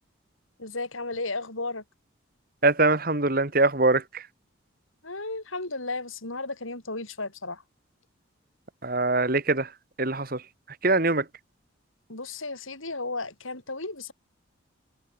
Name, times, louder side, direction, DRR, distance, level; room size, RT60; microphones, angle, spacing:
voice 1, 0.6-1.8 5.0-7.6 12.1-14.1, left 3 dB, 85° left, 7.8 m, -34 dB
voice 2, 2.6-4.2 8.8-9.7 10.0-10.4 10.8-11.2, right 2 dB, 45° right, 2.1 m, -23 dB
head